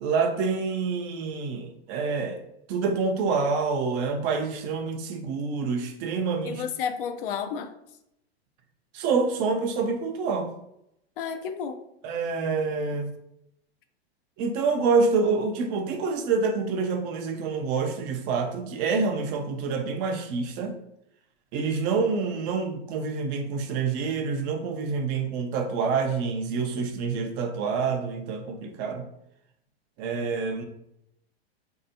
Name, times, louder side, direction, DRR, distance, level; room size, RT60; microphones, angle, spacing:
voice 1, 0.0-2.4 2.7-6.6 8.9-10.5 12.0-13.1 14.4-20.8 21.5-29.0 30.0-30.6, right 4 dB, 35° right, 5 dB, 0.4 m, -27 dB
voice 2, 6.4-7.7 11.2-11.8, left 7 dB, 60° left, 9 dB, 0.4 m, -31 dB
3.2 x 2.7 x 2.6 m, 0.80 s
hypercardioid pair, 105°, 32 cm